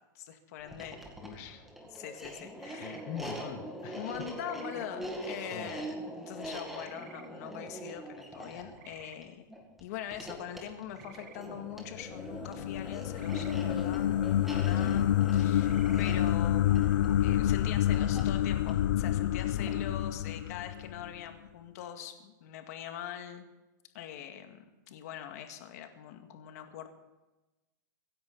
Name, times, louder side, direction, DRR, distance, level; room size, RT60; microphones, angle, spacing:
voice 1, 0.1-1.0 1.9-3.1 4.0-6.0 6.3-9.4 9.8-14.1 14.5-23.4 23.9-26.9, left 10 dB, 50° left, 6 dB, 2.0 m, -43 dB
sound 1, 0.6-19.9, right 1 dB, ahead, 2.1 m, -43 dB
voice 2, 1.2-1.7 2.7-4.2 5.5-5.7 14.8-15.1 17.3-17.6 18.1-18.2 19.6-19.8, left 8 dB, 35° left, 4 dB, 1.6 m, -43 dB
sound 2, 2.6-3.0 4.4-4.9 6.8-7.3 8.7-9.2 10.9-11.4 13.1-13.6 15.6-16.0, right 10 dB, 60° right, 1.6 m, -54 dB
sound 3, 11.9-21.2, left 12 dB, 70° left, 0.5 m, -28 dB
24.5 x 10.5 x 4.2 m, 1.1 s
supercardioid pair, 165°, 11 cm